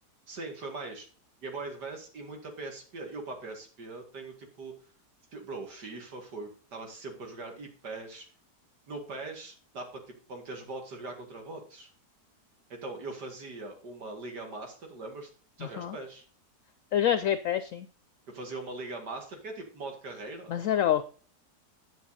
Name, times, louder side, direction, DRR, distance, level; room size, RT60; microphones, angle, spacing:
voice 1, 0.3-1.1 1.4-4.7 5.3-8.3 8.9-11.9 12.7-15.3 15.6-16.3 18.3-20.5, right 3 dB, 80° right, 3 dB, 2.7 m, -41 dB
voice 2, 15.6-16.0 16.9-17.9 20.5-21.0, left 10 dB, 65° left, 12 dB, 0.8 m, -27 dB
9.5 x 7.4 x 4.1 m, 0.39 s
omnidirectional pair, 1.8 m